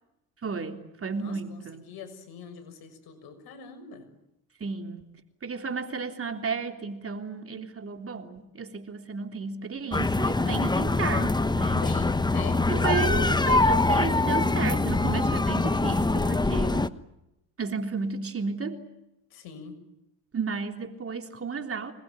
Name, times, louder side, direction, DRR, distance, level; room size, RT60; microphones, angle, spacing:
voice 1, 0.4-1.9 4.6-5.1 5.4-11.3 11.5-11.9 12.7-16.9 17.6-18.8 20.3-21.9, right 5 dB, 35° right, 6 dB, 3.4 m, -33 dB
voice 2, 1.2-4.1 11.8-12.7 19.3-19.8, left 6 dB, 65° left, 9 dB, 6.5 m, -43 dB
sound 1, 9.9-16.9, left 2 dB, 10° left, 1.2 m, -24 dB
26.0 x 21.0 x 9.1 m, 0.88 s
hypercardioid pair, 70°, 41 cm